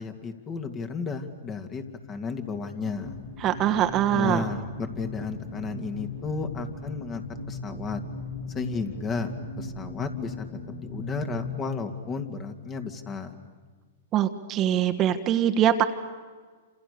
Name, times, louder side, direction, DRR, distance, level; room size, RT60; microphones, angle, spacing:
voice 1, 0.0-3.2 4.1-7.2 7.5-8.0 8.5-9.3 9.6-10.3 10.8-13.3, left 4 dB, 25° left, 7 dB, 2.5 m, -33 dB
sound 1, 2.8-11.4, left 2 dB, 75° left, 7.2 m, -38 dB
voice 2, 3.4-4.4 14.1-15.8, right 10 dB, 30° right, 8 dB, 1.5 m, -23 dB
29.0 x 27.5 x 6.9 m, 1.5 s
hypercardioid pair, 125°, 0 cm